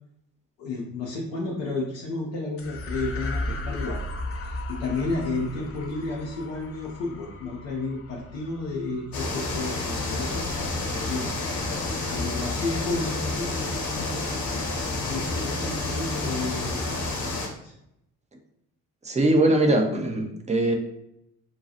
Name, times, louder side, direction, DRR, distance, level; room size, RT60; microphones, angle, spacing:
voice 1, 0.6-4.0 4.4-11.3 12.1-14.8 15.1-16.9 17.3-17.7, left 3 dB, 70° left, -4 dB, 0.7 m, -32 dB
sound 1, 2.6-11.2, left 1 dB, 30° left, 0.6 m, -36 dB
sound 2, 9.1-17.5, left 2 dB, 50° left, 1.1 m, -29 dB
voice 2, 19.0-20.7, right 1 dB, 15° right, 3 dB, 0.7 m, -21 dB
5.4 x 2.3 x 2.7 m, 0.80 s
figure-of-eight pair, 40°, 46 cm